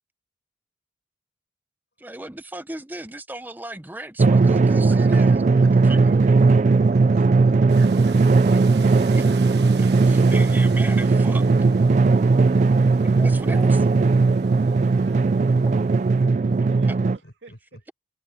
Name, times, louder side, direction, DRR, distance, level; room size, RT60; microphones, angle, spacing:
voice 1, 2.0-5.4 5.7-6.4 8.9-9.3 9.8-11.4 13.2-13.8, right 1 dB, 10° right, 0.7 m, -36 dB
Drum, 4.2-17.2, right 3 dB, 40° right, 0.3 m, -18 dB
voice 2, 6.2-7.9 16.6-17.8, equal, 65° left, 5.0 m, -47 dB
sound 1, 7.7-16.3, right 3 dB, 65° right, 1.3 m, -37 dB
voice 3, 7.7-8.5 13.7-15.6 16.4-17.8, right 4 dB, 80° right, 2.6 m, -50 dB
head